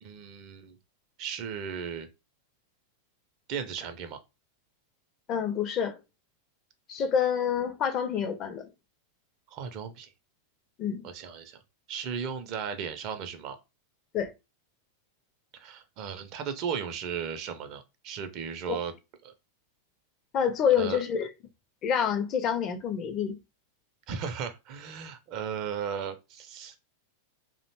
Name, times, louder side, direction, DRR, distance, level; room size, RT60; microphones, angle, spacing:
voice 1, 0.0-0.8 1.2-2.1 3.5-4.2 9.5-10.1 11.0-11.6 11.9-13.6 15.5-18.9 19.2-19.3 20.8-21.0 24.1-26.8, right 7 dB, 40° right, 0.4 m, -36 dB
voice 2, 5.3-6.0 6.9-8.7 10.8-11.0 14.1-14.3 18.7-18.8 20.3-21.3 21.8-23.4, left 7 dB, 35° left, 0.4 m, -27 dB
2.5 x 2.1 x 2.8 m
figure-of-eight pair, 90°, 0 cm